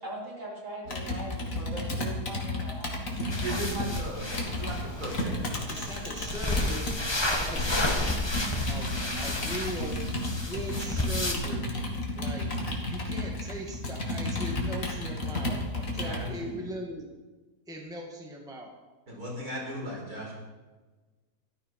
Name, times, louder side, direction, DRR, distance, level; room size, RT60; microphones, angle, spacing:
voice 1, 0.0-3.0, equal, 50° right, -5 dB, 5.5 m, -40 dB
Computer keyboard, 0.9-7.0 7.5-16.3, left 1 dB, 55° left, 2.6 m, -33 dB
sound 1, 3.3-11.3, left 1 dB, 15° left, 1.6 m, -32 dB
voice 2, 3.4-5.5 16.0-16.6 19.1-20.3, right 1 dB, 65° right, -3 dB, 5.3 m, -37 dB
voice 3, 5.7-6.9 7.3-8.1 8.7-10.1 10.4-11.6 12.1-17.1 17.7-18.7, right 1 dB, ahead, 0 dB, 1.9 m, -39 dB
14.0 x 13.5 x 5.9 m, 1.3 s
omnidirectional pair, 1.7 m